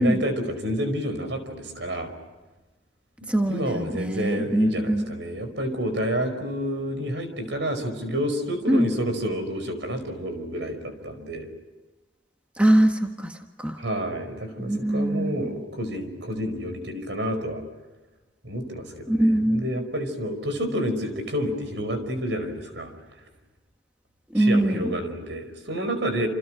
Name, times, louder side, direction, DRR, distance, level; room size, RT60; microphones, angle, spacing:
voice 1, 0.0-2.1 3.5-11.5 13.8-17.6 18.4-22.9 24.3-26.3, equal, 75° right, 8 dB, 5.1 m, -29 dB
voice 2, 3.3-5.1 8.7-8.9 12.6-13.8 14.6-15.5 19.1-19.7 24.3-25.0, right 1 dB, 5° right, 3 dB, 1.5 m, -22 dB
28.5 x 28.5 x 6.3 m, 1.2 s
head